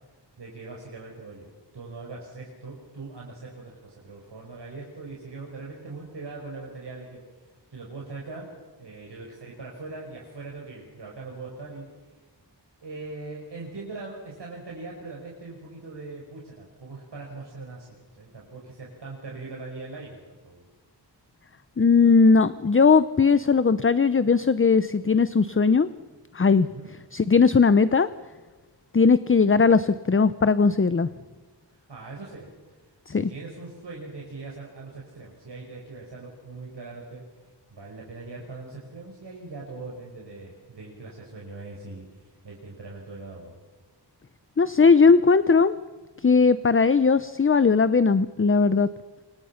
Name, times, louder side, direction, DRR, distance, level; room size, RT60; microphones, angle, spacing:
voice 1, 0.4-7.2 7.7-8.5 8.8-11.9 12.8-20.6 26.6-26.9 31.7-32.5 33.1-37.2 37.7-43.6, right 3 dB, 70° right, -2 dB, 5.6 m, -41 dB
voice 2, 21.8-25.9 26.3-26.7 27.1-28.1 28.9-31.1 33.1-33.3 44.6-45.8 46.2-48.9, left 5 dB, 30° left, 14 dB, 0.8 m, -19 dB
28.0 x 24.5 x 5.9 m, 1.3 s
wide cardioid pair, 85°, 43 cm